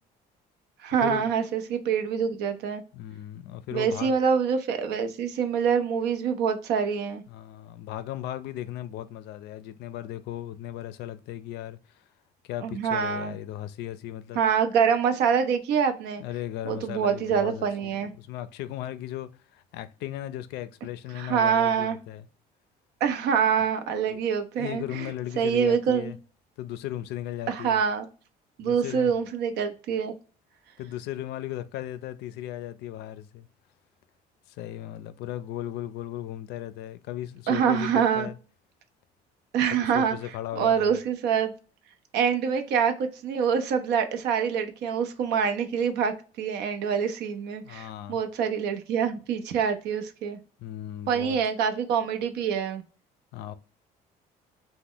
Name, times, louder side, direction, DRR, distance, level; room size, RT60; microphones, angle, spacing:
voice 1, 0.8-2.8 3.7-7.2 12.6-13.4 14.3-16.2 16.6-18.1 21.2-22.0 23.0-25.1 25.4-26.1 27.5-28.0 28.6-30.1 37.5-38.3 39.5-40.2 40.6-41.5 42.1-50.4 51.1-52.8, right 7 dB, 85° right, 0.6 m, -25 dB
voice 2, 2.9-4.2 7.3-12.0 12.4-14.4 16.2-22.3 24.1-24.2 24.6-26.2 26.6-27.8 28.6-29.2 30.8-33.5 34.5-38.4 39.8-41.0 47.6-48.2 50.6-51.4 53.3-53.5, left 12 dB, 80° left, 0.4 m, -36 dB
2.9 x 2.1 x 3.7 m
cardioid pair, 110°, 17 cm